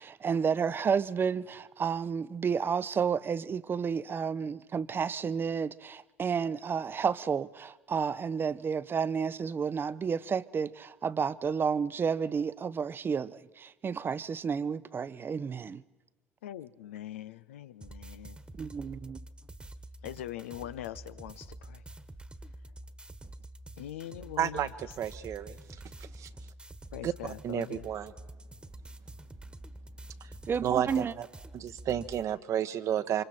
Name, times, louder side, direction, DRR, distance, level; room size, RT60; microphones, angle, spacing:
voice 1, 0.0-15.8 18.6-19.2 30.5-31.1, right 6 dB, 30° right, 0.8 m, -31 dB
voice 2, 16.4-18.4 20.0-21.8 23.8-24.7 26.9-27.9, left 12 dB, 75° left, 0.7 m, -42 dB
sound 1, 17.8-32.2, right 1 dB, 15° right, 1.5 m, -48 dB
voice 3, 24.4-24.7 25.0-25.6 26.1-26.3 27.0-27.1 27.4-28.1 30.2-30.3 30.6-31.3 31.5-33.2, right 10 dB, 50° right, 1.2 m, -31 dB
29.0 x 25.5 x 4.4 m
figure-of-eight pair, 60°, 7 cm